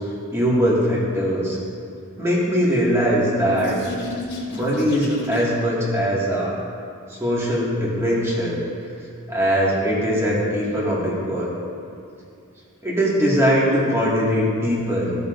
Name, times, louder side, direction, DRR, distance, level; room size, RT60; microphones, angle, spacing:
voice 1, 0.3-1.6 2.2-3.7 4.5-6.6 7.1-8.6 9.3-11.5 12.8-15.2, equal, 15° right, -7 dB, 2.1 m, -21 dB
sound 1, 2.8-5.7, left 1 dB, 55° left, 1.6 m, -34 dB
15.0 x 6.9 x 2.7 m, 2.5 s
head